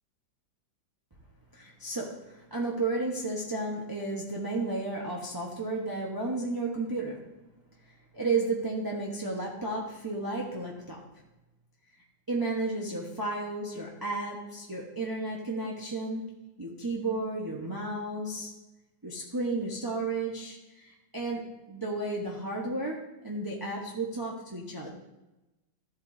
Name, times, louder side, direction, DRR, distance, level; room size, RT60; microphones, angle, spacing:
voice 1, 1.5-7.2 8.1-11.0 12.3-16.2 16.6-18.5 19.0-24.9, right 2 dB, 15° right, -3 dB, 0.9 m, -33 dB
14.0 x 8.2 x 2.7 m, 0.99 s
omnidirectional pair, 2.0 m